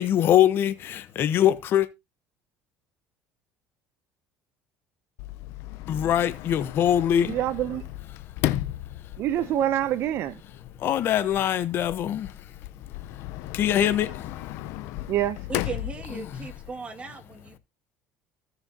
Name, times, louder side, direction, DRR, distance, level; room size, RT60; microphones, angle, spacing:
voice 1, 0.0-1.9 5.9-7.3 10.8-12.3 13.5-14.1 16.1-16.5, left 10 dB, 55° left, 1.1 m, -23 dB
Sliding door, 5.2-16.7, left 15 dB, 70° left, 0.7 m, -36 dB
voice 2, 7.2-7.8 9.2-10.4 15.1-15.4, right 12 dB, 60° right, 0.7 m, -26 dB
voice 3, 15.5-17.6, right 4 dB, 25° right, 2.3 m, -37 dB
16.0 x 6.5 x 2.9 m
supercardioid pair, 100°, 5 cm